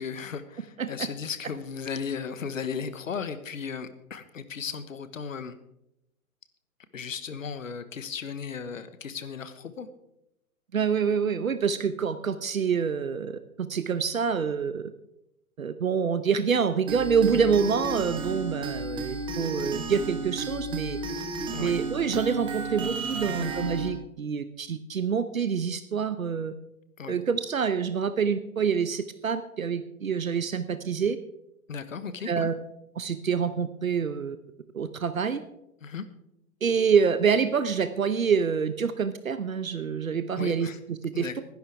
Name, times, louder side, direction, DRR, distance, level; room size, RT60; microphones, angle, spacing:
voice 1, 0.0-5.5 6.9-9.9 17.3-17.5 21.5-21.8 23.3-23.5 27.0-27.2 31.7-32.5 35.8-36.0 40.3-40.8 41.1-41.3, left 6 dB, 60° left, 12 dB, 1.4 m, -36 dB
voice 2, 10.7-14.9 15.6-21.0 21.6-26.5 27.1-31.2 32.2-32.5 33.0-34.4 34.7-35.4 36.6-41.4, right 6 dB, 65° right, 12 dB, 1.0 m, -26 dB
sound 1, 16.9-23.9, right 3 dB, 10° right, 1.3 m, -33 dB
19.5 x 11.5 x 3.5 m, 0.81 s
figure-of-eight pair, 125°, 43 cm